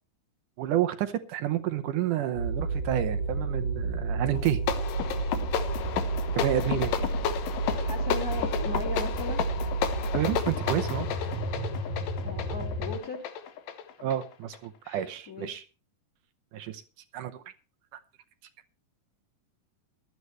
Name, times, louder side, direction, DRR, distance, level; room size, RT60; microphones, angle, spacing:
voice 1, 0.6-4.6 6.3-6.9 10.1-11.1 14.0-15.6 16.5-16.8 17.1-17.4, right 12 dB, 75° right, 9 dB, 2.4 m, -29 dB
sound 1, 2.4-13.0, right 3 dB, 55° left, 3.1 m, -31 dB
sound 2, 4.3-14.7, left 9 dB, 90° left, 2.9 m, -32 dB
voice 2, 7.7-9.4 12.2-13.3 14.8-15.5, left 4 dB, 25° left, 5 dB, 3.1 m, -38 dB
18.0 x 12.0 x 3.2 m, 0.31 s
omnidirectional pair, 3.8 m